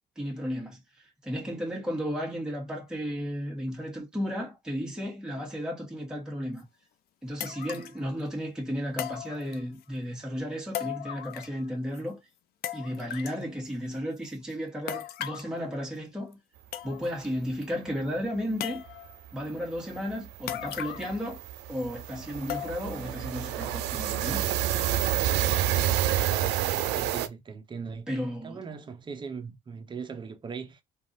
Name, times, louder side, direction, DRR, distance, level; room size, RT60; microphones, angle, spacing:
voice 1, 0.2-6.7 7.2-12.2 12.7-16.4 16.8-18.8 19.3-21.4 21.7-24.5 28.1-28.6, equal, 5° right, 1.4 m, -34 dB
sound 1, 6.6-6.7 7.4-8.0 9.0-9.8 10.7-11.7 11.9-12.0 12.6-13.4 14.9-15.5 16.3-16.4 16.7-17.3 17.6-17.7 18.6-19.2 20.5-21.2 21.5-21.6 22.5-23.0 23.5-23.6 24.2-24.3, left 12 dB, 70° left, 0.5 m, -37 dB
sound 2, 18.9-19.0 19.2-19.4 19.7-27.3, right 12 dB, 90° right, 0.4 m, -28 dB
voice 2, 26.2-28.1 28.4-30.8, right 5 dB, 25° right, 0.7 m, -40 dB
3.4 x 2.4 x 2.6 m
cardioid pair, 110°, 17 cm